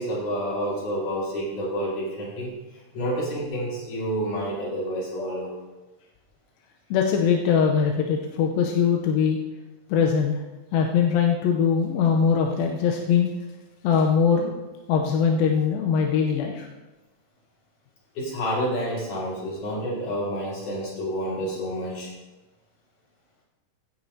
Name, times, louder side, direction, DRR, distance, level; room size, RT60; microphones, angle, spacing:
voice 1, 0.0-5.6 18.1-22.1, equal, 50° left, -6 dB, 4.9 m, -29 dB
voice 2, 6.9-9.4 9.9-10.4 10.7-13.3 13.8-14.5 14.9-16.7, left 6 dB, 80° left, 1 dB, 2.3 m, -21 dB
16.0 x 9.2 x 2.7 m, 1.1 s
omnidirectional pair, 4.7 m